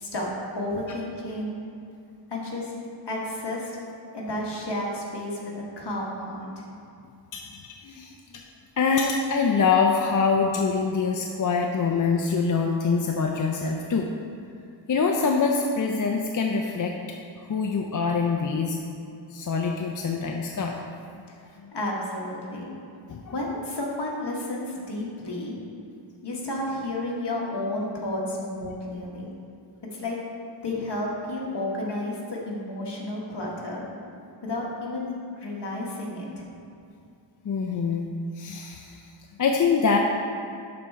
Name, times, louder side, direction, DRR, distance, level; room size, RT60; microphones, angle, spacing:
voice 1, 0.5-1.5 2.3-2.7 3.1-3.8 4.1-6.7 21.7-22.7 23.3-25.5 26.2-29.3 29.9-30.2 30.6-33.8 34.4-35.1 35.3-36.4, left 1 dB, 60° left, -3 dB, 1.6 m, -31 dB
voice 2, 7.8-8.1 8.8-14.1 14.9-16.9 17.5-18.8 19.3-20.7 21.6-21.7 23.1-23.3 28.7-28.8 37.4-38.1 38.4-39.0 39.4-40.0, left 5 dB, 45° left, 1 dB, 0.5 m, -24 dB
11.5 x 4.4 x 3.6 m, 2.5 s
wide cardioid pair, 115°, 45 cm